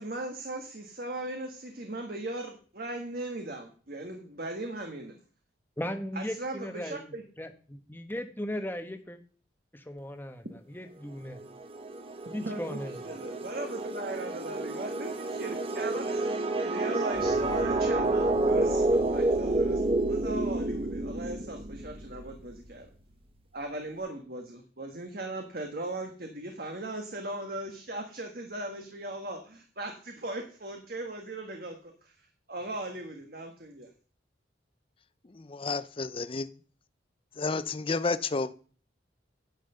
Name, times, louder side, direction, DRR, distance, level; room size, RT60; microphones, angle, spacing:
voice 1, 0.0-5.2 6.1-7.2 12.4-22.9 23.5-33.9, right 2 dB, 55° right, 1.4 m, -38 dB
voice 2, 5.8-9.2 9.7-11.4 12.3-13.0, left 1 dB, 10° left, 1.1 m, -37 dB
sound 1, 11.4-21.9, right 2 dB, 30° right, 1.0 m, -29 dB
sound 2, 17.1-23.6, equal, 80° right, 4.3 m, -43 dB
voice 3, 35.5-36.5 37.4-38.5, left 4 dB, 30° left, 0.5 m, -30 dB
10.5 x 5.7 x 7.8 m
head